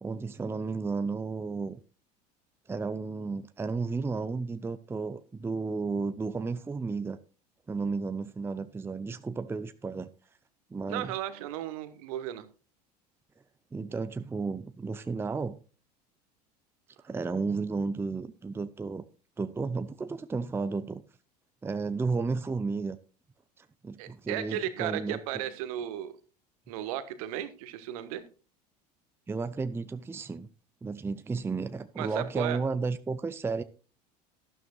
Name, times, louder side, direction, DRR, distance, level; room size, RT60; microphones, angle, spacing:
voice 1, 0.0-1.8 2.7-7.2 7.7-10.1 10.7-11.1 13.7-15.6 17.0-19.0 19.4-21.0 21.6-23.0 23.6-25.4 29.3-30.5 30.8-33.6, right 4 dB, 10° right, 0.6 m, -33 dB
voice 2, 10.9-12.4 24.0-26.1 26.7-28.2 32.0-32.6, right 11 dB, 60° right, 1.4 m, -35 dB
12.5 x 12.0 x 2.4 m
figure-of-eight pair, 75°, 21 cm